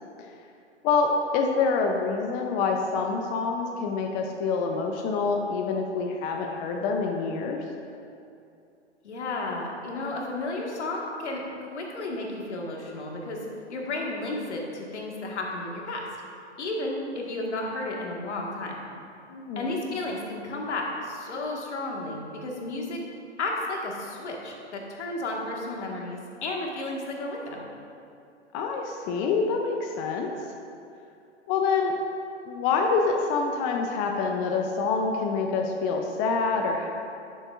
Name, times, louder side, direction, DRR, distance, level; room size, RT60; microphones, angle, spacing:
voice 1, 0.8-7.6 19.3-19.7 28.5-30.3 31.5-31.9 32.5-36.9, left 4 dB, 25° left, 2 dB, 0.5 m, -26 dB
voice 2, 9.0-13.4 13.7-16.1 16.6-18.7 19.5-23.0 23.4-27.6, left 2 dB, 70° left, -1 dB, 1.6 m, -33 dB
10.5 x 7.0 x 2.4 m, 2.6 s
hypercardioid pair, 115°, 36 cm